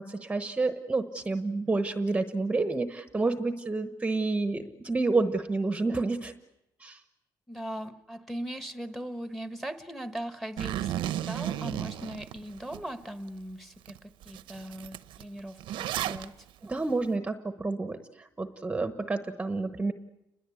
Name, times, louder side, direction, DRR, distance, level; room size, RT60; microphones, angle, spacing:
voice 1, 0.0-6.3 6.8-7.0 16.6-19.9, right 3 dB, 15° right, 9 dB, 1.0 m, -29 dB
voice 2, 7.5-16.4, right 1 dB, ahead, 9 dB, 1.2 m, -39 dB
Zipper (clothing), 10.6-12.8 13.3-13.4 13.9-14.0 14.2-16.2, right 12 dB, 90° right, 0.9 m, -33 dB
29.5 x 21.0 x 8.4 m, 0.92 s
cardioid pair, 140°, 8 cm